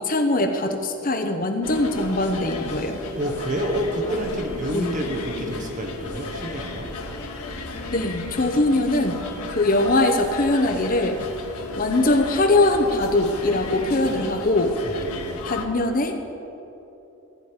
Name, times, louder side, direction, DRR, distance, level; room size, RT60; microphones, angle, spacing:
voice 1, 0.0-3.0 4.7-5.0 7.9-9.2 9.5-11.2 11.8-14.7 15.5-16.2, left 2 dB, 40° left, 5 dB, 0.8 m, -22 dB
sound 1, 1.6-15.7, left 2 dB, 85° left, 1.2 m, -34 dB
voice 2, 3.0-6.9 14.8-15.5, equal, 35° right, 2 dB, 1.3 m, -29 dB
15.0 x 5.2 x 8.9 m, 2.9 s
head